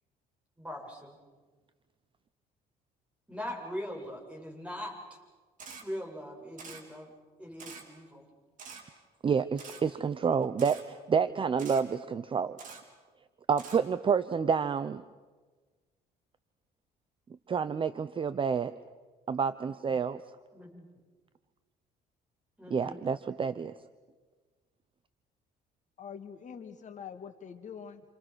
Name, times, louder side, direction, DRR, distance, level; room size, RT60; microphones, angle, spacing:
voice 1, 0.6-1.2 3.3-5.0 5.8-7.1 7.4-8.2 20.5-20.9 22.6-23.0, equal, 5° right, 0 dB, 7.8 m, -41 dB
Camera, 5.6-5.8 6.6-6.8 7.6-7.8 8.6-8.8 9.6-9.8 10.6-10.8 11.6-11.8 12.6-12.8 13.6-13.8, right 5 dB, 50° right, 5.0 m, -45 dB
voice 2, 9.2-12.6 13.5-15.0 17.5-18.7 19.3-20.2 22.7-23.7, right 6 dB, 30° right, 13 dB, 0.8 m, -29 dB
voice 3, 26.0-28.0, left 7 dB, 45° left, 6 dB, 1.8 m, -44 dB
29.0 x 27.0 x 6.4 m, 1.4 s
cardioid pair, 110°, 17 cm